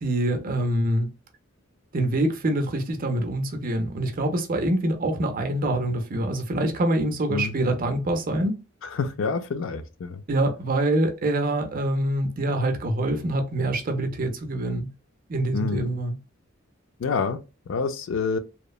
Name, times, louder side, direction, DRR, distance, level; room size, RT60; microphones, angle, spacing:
voice 1, 0.0-1.1 1.9-8.6 10.3-14.9 15.3-16.2, right 1 dB, 45° right, 0.5 m, -25 dB
voice 2, 9.0-10.2 15.5-15.9 17.0-18.4, left 5 dB, 65° left, 0.4 m, -27 dB
2.9 x 2.1 x 2.3 m
head